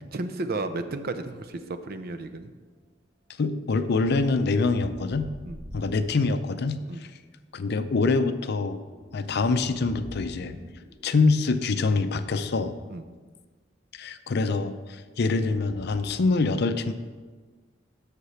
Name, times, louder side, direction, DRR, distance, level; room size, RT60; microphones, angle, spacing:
voice 1, 0.1-2.5 5.4-5.6 6.9-7.0 12.9-13.1, right 2 dB, 55° right, 9 dB, 0.6 m, -33 dB
voice 2, 3.4-5.3 5.7-6.8 7.5-8.8 9.1-10.5 11.0-12.8 13.9-16.9, left 3 dB, 60° left, 11 dB, 0.5 m, -25 dB
sound 1, 3.6-6.1 8.6-11.2 15.4-16.0, equal, 35° right, 1.3 m, -45 dB
8.2 x 6.6 x 5.7 m, 1.4 s
head